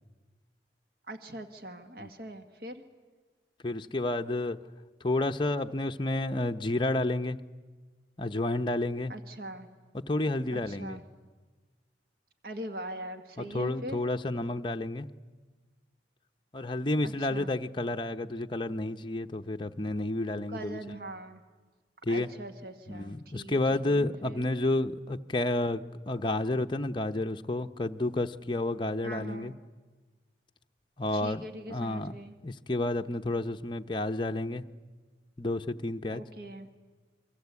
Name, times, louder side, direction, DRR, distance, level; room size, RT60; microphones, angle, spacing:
voice 1, 1.1-2.8 9.1-9.7 10.5-11.0 12.4-14.0 17.0-17.5 20.5-21.4 22.1-24.5 29.0-29.5 31.1-32.4 36.1-36.7, right 1 dB, 55° right, 7 dB, 1.8 m, -42 dB
voice 2, 3.6-4.6 5.0-7.4 8.2-9.1 9.9-11.0 13.4-15.1 16.5-20.8 22.0-22.3 22.9-29.5 31.0-31.4 31.7-32.1 32.4-34.7 35.4-36.2, left 2 dB, 25° left, 6 dB, 0.8 m, -30 dB
28.0 x 23.5 x 8.3 m, 1.3 s
head